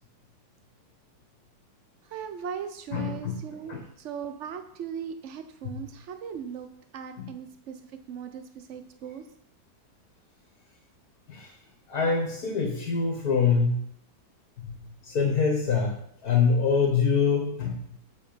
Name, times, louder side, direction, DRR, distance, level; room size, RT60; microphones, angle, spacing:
voice 1, 2.0-6.7 6.9-9.3, right 7 dB, 75° right, 8 dB, 0.6 m, -38 dB
voice 2, 2.9-3.3 3.7-3.8 7.2-7.3 11.3-11.6 11.9-13.9 14.6-17.8, left 5 dB, 55° left, 1 dB, 1.9 m, -25 dB
7.9 x 7.8 x 5.2 m, 0.69 s
omnidirectional pair, 2.0 m